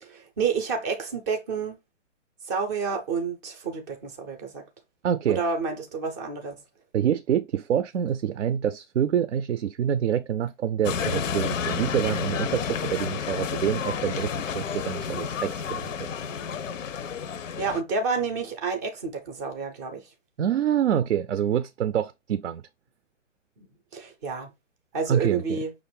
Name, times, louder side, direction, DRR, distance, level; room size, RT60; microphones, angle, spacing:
voice 1, 0.0-1.8 2.4-4.6 5.3-6.6 17.6-20.1 23.6-23.7 23.9-24.5 24.9-25.7, right 5 dB, 15° right, 0.4 m, -29 dB
voice 2, 5.0-5.4 6.9-15.9 20.4-22.6 25.1-25.6, right 9 dB, 70° right, 0.5 m, -26 dB
sound 1, 10.8-17.8, left 7 dB, 80° left, 0.6 m, -30 dB
5.9 x 2.5 x 3.2 m
figure-of-eight pair, 125°, 38 cm